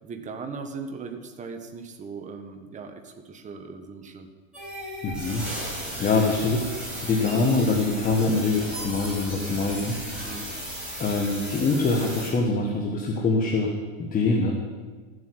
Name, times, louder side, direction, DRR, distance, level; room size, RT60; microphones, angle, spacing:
voice 1, 0.0-4.3 9.3-9.6 10.2-10.5, right 4 dB, 20° right, 5 dB, 1.3 m, -38 dB
sound 1, 4.5-12.3, equal, ahead, 5.4 m, -35 dB
voice 2, 5.0-6.7 7.0-10.0 11.0-13.7 14.0-14.5, left 3 dB, 20° left, 0 dB, 1.4 m, -24 dB
14.5 x 7.8 x 8.0 m, 1.4 s
supercardioid pair, 145°, 39 cm